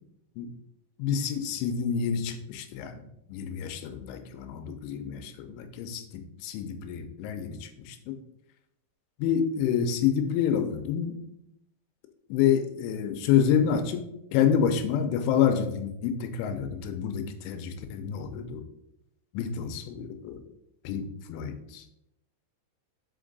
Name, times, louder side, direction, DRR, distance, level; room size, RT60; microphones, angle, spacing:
voice 1, 1.0-8.2 9.2-11.2 12.3-18.6 19.3-20.4 20.8-21.8, left 8 dB, 85° left, 7 dB, 3.1 m, -28 dB
6.2 x 5.1 x 3.9 m, 0.81 s
omnidirectional pair, 5.5 m